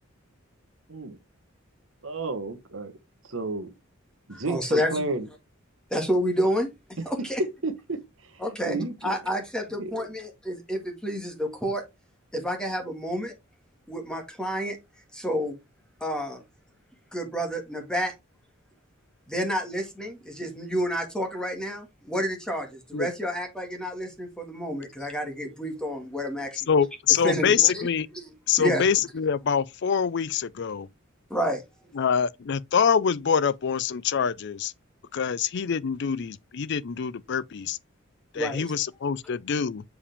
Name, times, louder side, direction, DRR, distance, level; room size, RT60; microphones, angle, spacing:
voice 1, 2.0-2.9 3.2-3.7 4.3-5.3 7.6-7.7 8.7-9.1 9.8-10.1, right 3 dB, 70° right, 1.3 m, -31 dB
voice 2, 4.3-5.0 5.9-6.7 7.1-7.4 8.4-11.8 12.3-13.3 13.9-14.8 15.1-15.6 16.0-16.4 17.1-18.1 19.3-26.7 27.2-28.9 31.3-31.6 38.3-38.7, equal, 5° left, 1.8 m, -29 dB
voice 3, 26.7-28.1 28.5-30.9 32.0-34.7 35.1-37.8 38.3-39.8, left 7 dB, 60° left, 0.5 m, -25 dB
6.9 x 4.9 x 3.4 m
head